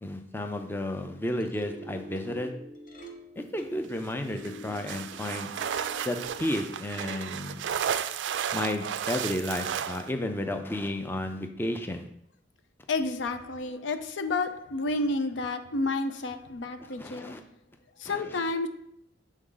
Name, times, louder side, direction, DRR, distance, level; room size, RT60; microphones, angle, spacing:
voice 1, 0.0-2.5 3.4-5.5 6.1-7.6 8.5-12.1 17.0-17.4 18.1-18.4, left 1 dB, 10° left, 6 dB, 0.4 m, -32 dB
sound 1, 1.1-7.0, equal, 50° left, 0.8 m, -47 dB
sound 2, 4.4-10.1, right 8 dB, 85° right, 0.3 m, -33 dB
voice 2, 12.9-17.4 18.0-18.7, left 3 dB, 90° left, 8 dB, 0.6 m, -30 dB
7.3 x 3.6 x 3.9 m, 0.74 s
head